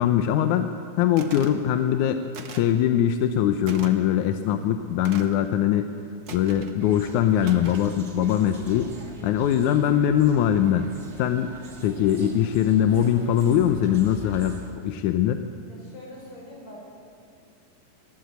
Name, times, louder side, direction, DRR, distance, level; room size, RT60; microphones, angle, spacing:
voice 1, 0.0-2.2 2.5-5.9 6.3-8.9 9.2-10.9 11.2-11.5 11.8-15.4, left 10 dB, 75° left, 8 dB, 2.0 m, -22 dB
sound 1, 1.2-1.6 2.3-2.7 3.7-3.9 5.0-5.4 6.3-6.8 7.4-7.9, right 6 dB, 65° right, 1.1 m, -41 dB
voice 2, 1.6-1.9 15.7-17.0, left 1 dB, 50° left, -2 dB, 6.6 m, -44 dB
sound 2, 6.8-14.7, right 3 dB, 40° right, 1.0 m, -43 dB
20.5 x 16.0 x 8.1 m, 2.2 s
omnidirectional pair, 3.9 m